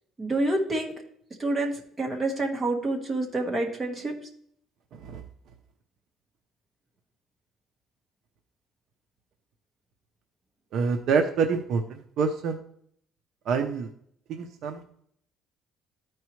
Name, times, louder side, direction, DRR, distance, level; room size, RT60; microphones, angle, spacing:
voice 1, 0.2-0.9 1.4-4.1, right 2 dB, 20° right, 1 dB, 1.4 m, -28 dB
voice 2, 10.7-12.6 13.5-13.9 14.3-14.8, right 5 dB, 60° right, 5 dB, 0.7 m, -26 dB
13.5 x 4.6 x 3.1 m, 0.66 s
cardioid pair, 150°, 0 cm